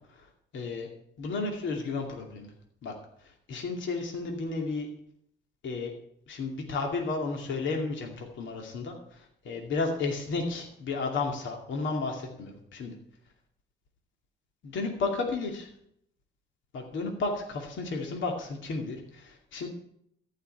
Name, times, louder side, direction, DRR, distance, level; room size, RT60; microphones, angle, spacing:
voice 1, 0.5-0.9 1.2-2.5 2.8-2.9 3.5-4.9 5.6-5.9 6.3-12.9 14.6-15.7 16.7-19.7, left 3 dB, 70° left, 2 dB, 2.4 m, -33 dB
14.5 x 5.8 x 9.7 m, 0.70 s
cardioid pair, 90°, 20 cm